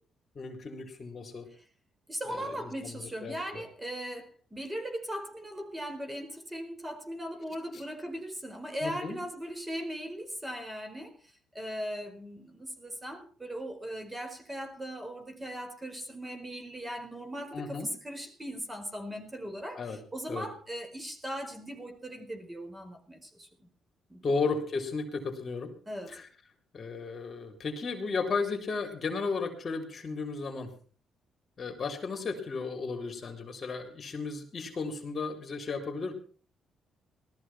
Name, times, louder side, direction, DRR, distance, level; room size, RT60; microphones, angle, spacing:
voice 1, 0.4-1.5 2.3-3.6 7.7-7.8 8.8-9.2 17.5-17.9 19.7-20.0 20.3-20.5 24.2-25.7 26.1-26.3 26.7-30.7 31.6-36.1, left 4 dB, 45° left, 3.8 m, -34 dB
voice 2, 2.1-11.1 11.5-23.7 24.1-24.2 25.9-26.2, equal, 15° right, 4.5 m, -39 dB
18.0 x 14.0 x 4.4 m
cardioid pair, 90°, 0 cm